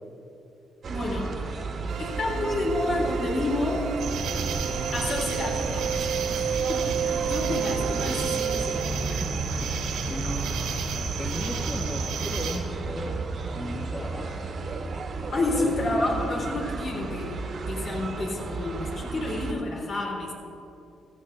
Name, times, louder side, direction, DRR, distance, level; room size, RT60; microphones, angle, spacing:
sound 1, 0.8-19.5, right 3 dB, 50° right, 1.3 m, -34 dB
voice 1, 0.9-1.4 2.0-3.9 4.9-5.9 6.7-9.1 15.3-17.4 17.7-20.3, left 2 dB, 55° left, -2 dB, 3.5 m, -29 dB
sound 2, 1.9-8.8, right 8 dB, 70° right, 0.4 m, -32 dB
sound 3, 4.0-12.6, right 5 dB, 85° right, 1.6 m, -32 dB
voice 2, 9.1-10.5 11.2-13.2 13.5-14.5 15.4-15.7 17.8-18.0, equal, 20° left, -1 dB, 1.3 m, -36 dB
15.5 x 14.0 x 3.4 m, 2.9 s
cardioid pair, 90°, 0 cm